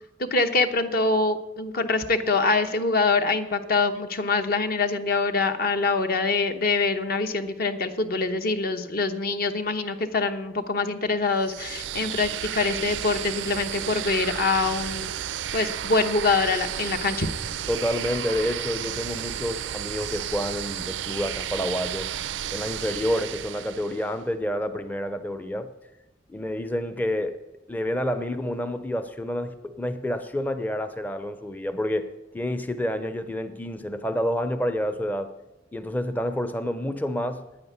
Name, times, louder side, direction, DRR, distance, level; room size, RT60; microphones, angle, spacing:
voice 1, 0.2-15.1 15.5-17.3, left 3 dB, 55° left, 8 dB, 1.0 m, -24 dB
sound 1, 11.4-24.1, right 10 dB, 85° right, 0.4 m, -33 dB
voice 2, 17.7-22.1 22.5-25.7 26.3-27.4 27.7-35.3 35.7-37.4, equal, 10° left, 9 dB, 0.5 m, -29 dB
9.5 x 9.3 x 9.4 m, 1.1 s
head